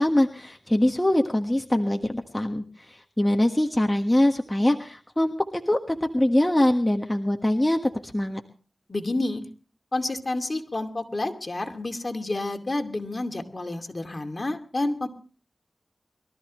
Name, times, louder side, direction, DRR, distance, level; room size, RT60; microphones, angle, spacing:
voice 1, 0.0-8.4, left 1 dB, 15° left, 3 dB, 1.5 m, -23 dB
voice 2, 8.9-9.5 9.9-15.1, left 2 dB, 45° left, 5 dB, 2.5 m, -29 dB
23.5 x 14.0 x 3.1 m, 0.38 s
cardioid pair, 45°, 0 cm